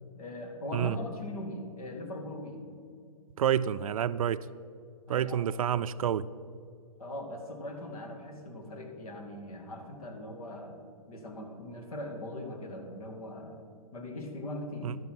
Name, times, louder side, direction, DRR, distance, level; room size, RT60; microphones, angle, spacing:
voice 1, 0.1-2.6 5.1-5.4 7.0-10.8 11.1-13.6 13.9-14.9, left 1 dB, 70° left, 3 dB, 2.3 m, -40 dB
voice 2, 3.4-4.5 5.1-6.3 14.8-15.0, right 9 dB, 65° right, 15 dB, 0.4 m, -28 dB
12.0 x 7.1 x 6.0 m, 2.3 s
hypercardioid pair, 165°, 19 cm